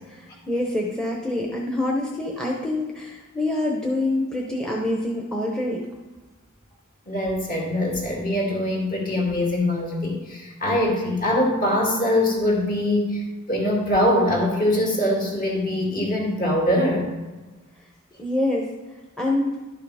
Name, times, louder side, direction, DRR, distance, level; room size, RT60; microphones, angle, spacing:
voice 1, 0.1-5.8 18.2-18.7 19.2-19.6, left 1 dB, 5° left, -1 dB, 0.9 m, -26 dB
voice 2, 7.1-13.2 13.5-17.1, left 1 dB, 40° left, -2 dB, 2.4 m, -23 dB
11.5 x 5.7 x 4.9 m, 1.2 s
head